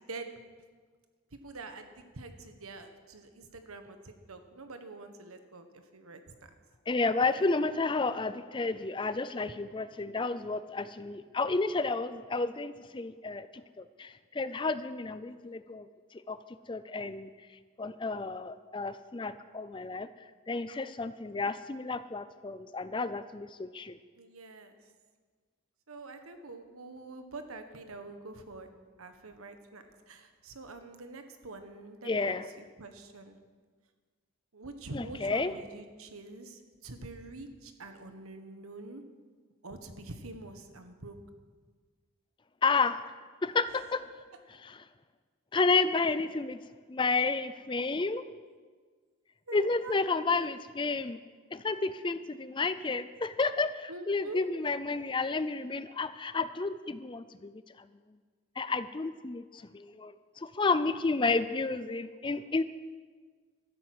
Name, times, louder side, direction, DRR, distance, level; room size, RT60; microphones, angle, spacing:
voice 1, 1.3-6.2 7.2-7.3 24.2-24.7 25.9-28.7 29.0-33.4 34.5-39.0 39.6-41.1 49.5-49.9 50.3-50.5 53.9-54.5, right 2 dB, 85° right, 7 dB, 1.4 m, -46 dB
voice 2, 6.9-16.4 16.7-20.1 20.5-24.0 32.0-32.5 34.9-35.5 42.6-43.1 43.4-44.1 44.6-44.8 45.5-46.6 46.9-48.2 49.5-51.2 51.5-57.5 57.8-57.9 58.6-62.6, left 3 dB, 20° left, 13 dB, 0.4 m, -31 dB
13.0 x 10.5 x 7.9 m, 1.5 s
head